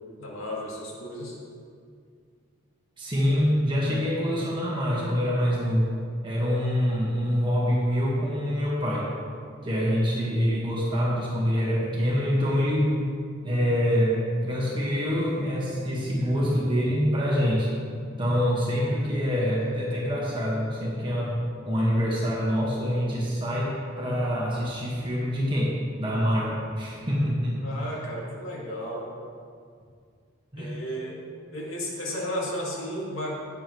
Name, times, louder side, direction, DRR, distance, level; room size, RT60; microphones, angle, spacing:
voice 1, 0.2-1.4 27.6-29.1 30.6-31.2 31.5-33.3, equal, 85° left, -4 dB, 2.1 m, -33 dB
voice 2, 3.0-5.9 6.2-9.1 9.6-12.9 13.4-17.7 18.2-21.4 21.6-27.6 30.5-30.8, equal, 25° right, -5 dB, 1.6 m, -25 dB
17.0 x 7.0 x 3.1 m, 2.2 s
head